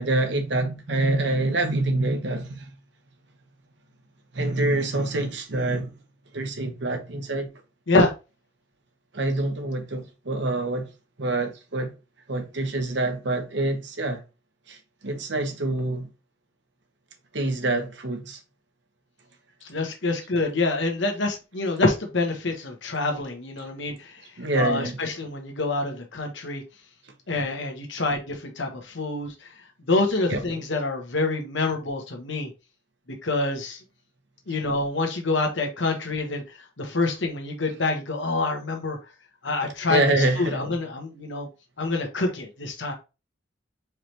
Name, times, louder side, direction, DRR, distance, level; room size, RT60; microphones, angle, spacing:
voice 1, 0.0-2.7 4.3-5.9 6.3-7.5 9.1-10.9 11.2-11.9 12.3-14.2 14.7-16.1 17.3-18.4 23.6-23.7 24.4-25.0 30.3-30.4 39.9-40.7, right 2 dB, 65° right, 1.0 m, -26 dB
voice 2, 19.6-24.2 24.5-26.6 27.3-29.5 29.9-32.5 33.2-33.8 34.5-39.0 39.4-41.5 41.8-42.9, left 2 dB, 70° left, 1.2 m, -26 dB
4.8 x 3.3 x 2.9 m
head